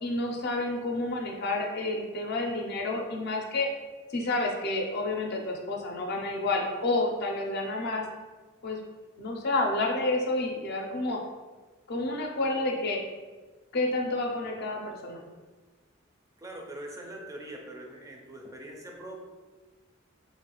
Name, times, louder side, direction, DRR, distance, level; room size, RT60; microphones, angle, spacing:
voice 1, 0.0-3.7 4.1-8.0 8.6-8.8 9.2-11.2 11.9-13.0 13.7-15.2, left 2 dB, 55° left, 1 dB, 0.5 m, -29 dB
voice 2, 16.4-19.2, right 1 dB, 15° right, 0 dB, 0.3 m, -42 dB
3.0 x 2.3 x 2.9 m, 1.3 s
head